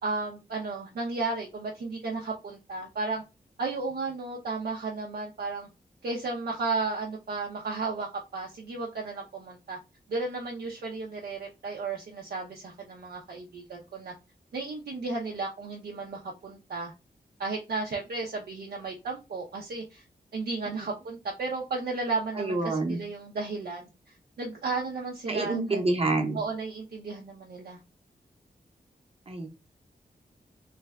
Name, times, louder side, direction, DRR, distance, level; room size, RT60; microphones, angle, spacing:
voice 1, 0.0-3.2 3.6-5.7 6.0-9.8 10.1-14.1 14.5-16.9 17.4-20.0 20.3-25.8 26.3-27.8, right 3 dB, 85° right, -1 dB, 0.6 m, -34 dB
voice 2, 22.4-23.0 25.3-26.4 29.3-29.5, right 2 dB, 40° right, 3 dB, 0.8 m, -27 dB
3.3 x 2.2 x 3.4 m, 0.27 s
wide cardioid pair, 130°, 16 cm